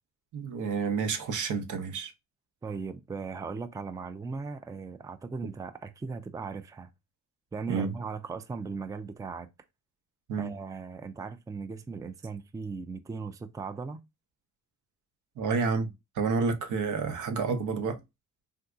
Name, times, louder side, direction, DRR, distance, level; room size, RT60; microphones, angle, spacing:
voice 1, 0.3-2.1 7.7-7.9 10.3-10.5 15.4-18.0, right 5 dB, 80° right, 0.8 m, -29 dB
voice 2, 2.6-6.9 7.5-9.5 10.4-14.0, right 4 dB, 10° right, 0.4 m, -38 dB
3.6 x 2.7 x 2.3 m
cardioid pair, 90°, 30 cm